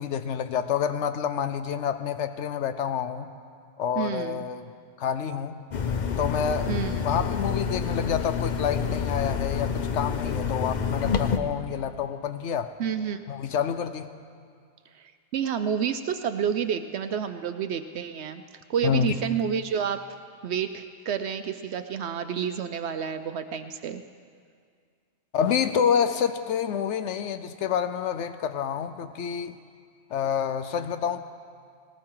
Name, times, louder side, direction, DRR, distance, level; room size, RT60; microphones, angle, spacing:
voice 1, 0.0-3.3 3.8-4.7 5.0-5.6 6.2-6.7 7.0-12.7 13.3-14.1 18.8-19.2 25.3-29.6 30.1-31.2, left 8 dB, 75° left, 10 dB, 0.9 m, -28 dB
voice 2, 4.0-4.4 6.7-6.9 12.8-13.2 14.9-18.4 18.7-20.0 20.4-24.0, right 7 dB, 70° right, 9 dB, 0.8 m, -29 dB
sound 1, 5.7-11.4, left 6 dB, 45° left, 0.7 m, -28 dB
19.5 x 19.0 x 3.8 m, 2.2 s
omnidirectional pair, 1.2 m